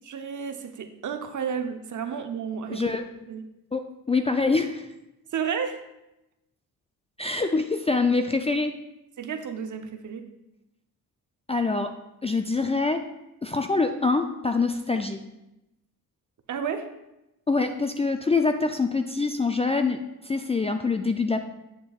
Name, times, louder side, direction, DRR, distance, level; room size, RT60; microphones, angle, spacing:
voice 1, 0.0-2.9 3.3-3.4 5.3-5.8 9.2-10.3 16.5-16.9, right 7 dB, 50° right, 7 dB, 0.7 m, -32 dB
voice 2, 2.7-3.0 3.7-4.9 7.2-8.7 11.5-11.9 12.2-13.0 13.4-15.2 17.5-21.4, left 3 dB, 15° left, 6 dB, 0.3 m, -25 dB
8.4 x 6.8 x 2.4 m, 0.92 s
cardioid pair, 85°, 38 cm